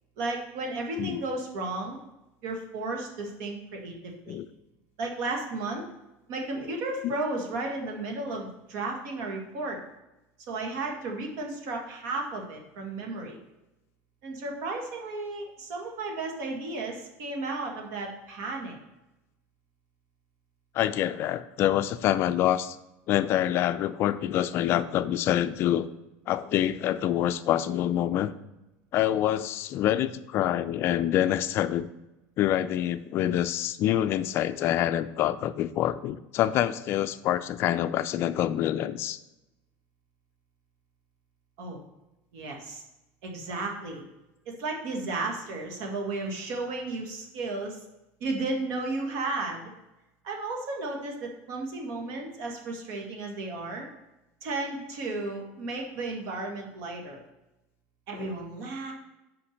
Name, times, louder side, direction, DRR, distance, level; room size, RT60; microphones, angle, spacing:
voice 1, 0.2-2.0 2.4-4.4 5.0-5.8 6.3-9.8 10.5-13.4 14.2-18.8 41.6-41.8 42.3-42.8 43.2-44.0 44.5-47.8 48.2-49.7 50.2-53.9 54.4-57.2 58.1-58.9, right 2 dB, 65° right, 1 dB, 1.8 m, -34 dB
voice 2, 20.7-22.8 23.1-25.9 26.3-28.3 28.9-31.9 32.4-39.2 58.2-58.3, left 12 dB, 45° left, 12 dB, 0.4 m, -26 dB
5.9 x 5.1 x 6.4 m, 0.97 s
cardioid pair, 150°, 6 cm